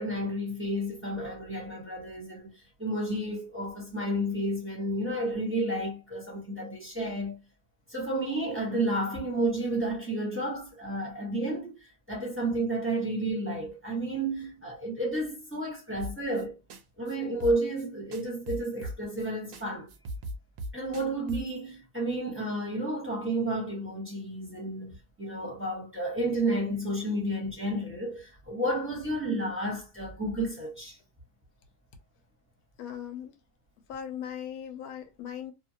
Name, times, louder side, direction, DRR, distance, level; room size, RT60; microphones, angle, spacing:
voice 1, 0.0-2.5 2.8-7.4 7.9-11.7 12.1-16.5 17.0-19.9 20.7-31.0, right 1 dB, 10° right, 0.8 m, -31 dB
sound 1, 16.0-16.4 16.7-16.8 17.1-17.2 17.4-17.9 18.1-19.3 19.5-19.6 19.9-21.6, right 1 dB, 65° right, 0.8 m, -38 dB
voice 2, 32.8-33.3 33.9-35.5, left 9 dB, 65° left, 1.0 m, -38 dB
2.8 x 2.5 x 2.7 m
omnidirectional pair, 1.8 m